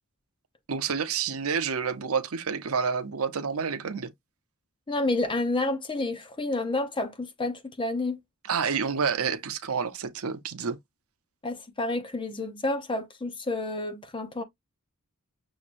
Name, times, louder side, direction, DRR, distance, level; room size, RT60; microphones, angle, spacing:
voice 1, 0.7-4.1 8.5-10.8, right 6 dB, 75° right, 0.7 m, -29 dB
voice 2, 4.9-8.2 11.4-14.4, left 2 dB, 25° left, 0.6 m, -29 dB
6.3 x 3.2 x 2.5 m
head